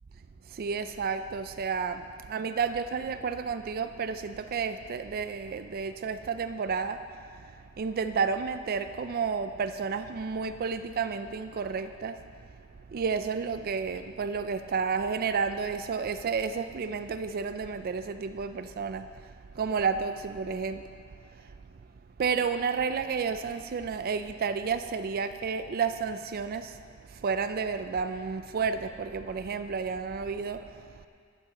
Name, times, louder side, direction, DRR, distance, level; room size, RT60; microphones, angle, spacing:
voice 1, 0.5-12.4 12.9-20.8 21.3-21.5 22.2-26.8 27.1-31.1, right 5 dB, 45° right, 10 dB, 0.4 m, -31 dB
14.0 x 12.0 x 3.8 m, 2.2 s
head